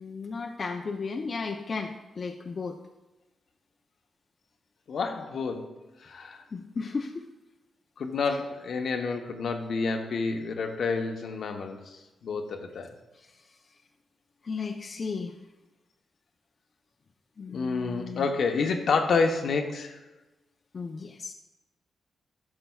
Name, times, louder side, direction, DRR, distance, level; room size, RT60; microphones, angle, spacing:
voice 1, 0.0-2.8 6.5-7.3 8.3-8.4 13.1-13.6 14.4-15.3 17.4-18.3 20.7-21.3, left 4 dB, 45° left, 2 dB, 0.6 m, -35 dB
voice 2, 4.9-5.7 6.0-6.4 8.0-11.8 12.2-12.9 17.5-20.0, left 4 dB, 70° left, 4 dB, 0.9 m, -29 dB
12.0 x 6.8 x 2.3 m, 1.1 s
cardioid pair, 90°, 0 cm